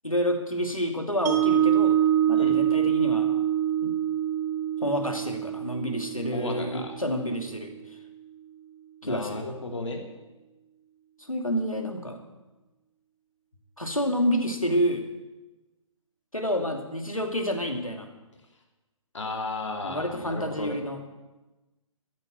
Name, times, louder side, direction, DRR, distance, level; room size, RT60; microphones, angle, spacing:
voice 1, 0.0-2.0 2.3-3.4 3.8-3.9 4.8-8.0 9.0-9.5 11.2-12.2 13.8-15.1 16.3-18.1 19.8-21.0, equal, 90° left, 4 dB, 2.6 m, -29 dB
Mallet percussion, 1.3-7.4, right 10 dB, 35° right, 1.9 m, -25 dB
voice 2, 6.3-6.9 9.0-10.0 19.1-20.8, left 3 dB, 60° left, 2 dB, 2.7 m, -34 dB
13.5 x 9.4 x 7.8 m, 1.1 s
figure-of-eight pair, 135°, 17 cm